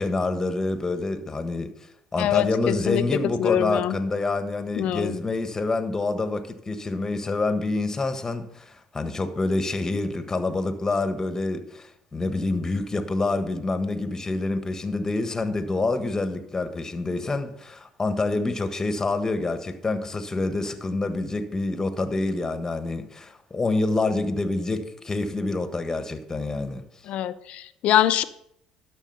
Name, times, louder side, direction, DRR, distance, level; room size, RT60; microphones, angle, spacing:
voice 1, 0.0-1.7 2.1-26.8, left 2 dB, 20° left, 1.4 m, -27 dB
voice 2, 2.2-3.0 3.4-3.9 4.8-5.1 27.1-28.2, left 12 dB, 60° left, 0.6 m, -24 dB
11.5 x 6.3 x 5.6 m
hypercardioid pair, 65°, 2 cm